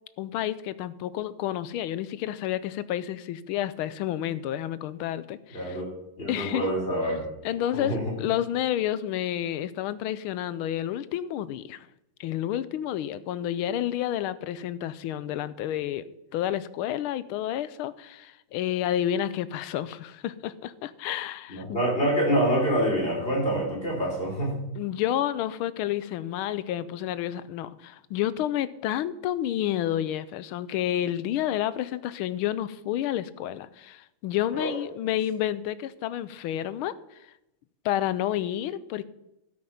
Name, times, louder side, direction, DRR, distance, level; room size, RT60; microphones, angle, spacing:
voice 1, 0.2-5.8 6.3-6.7 7.4-11.9 12.2-21.8 24.7-37.3 37.8-39.0, left 11 dB, 85° left, 16 dB, 1.5 m, -30 dB
voice 2, 5.5-5.9 6.2-7.2 7.7-8.2 21.5-24.5 34.5-34.7, equal, 25° left, -1 dB, 3.8 m, -26 dB
13.0 x 7.7 x 5.8 m, 0.89 s
omnidirectional pair, 2.3 m